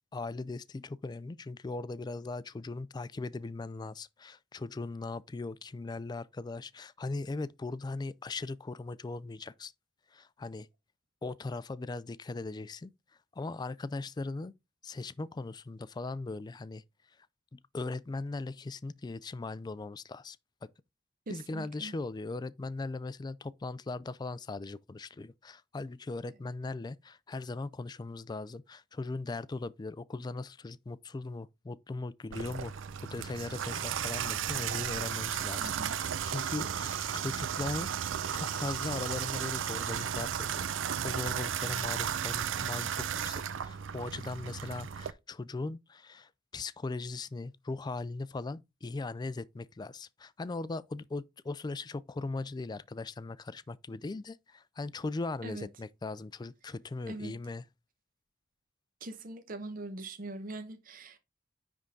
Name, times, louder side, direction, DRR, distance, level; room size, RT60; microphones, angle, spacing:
voice 1, 0.1-9.7 10.1-10.7 11.2-12.9 13.4-14.5 14.8-16.8 17.5-20.4 21.3-32.7 33.0-37.9 38.3-40.7 41.0-57.6, left 3 dB, 20° left, 0.3 m, -39 dB
voice 2, 21.3-21.9 35.6-35.9 55.4-55.7 57.1-57.3 59.0-61.2, right 2 dB, 45° right, 0.8 m, -42 dB
Water tap faucet / Bathtub (filling or washing), 32.3-45.1, right 8 dB, 90° right, 0.5 m, -34 dB
9.8 x 3.6 x 3.8 m
head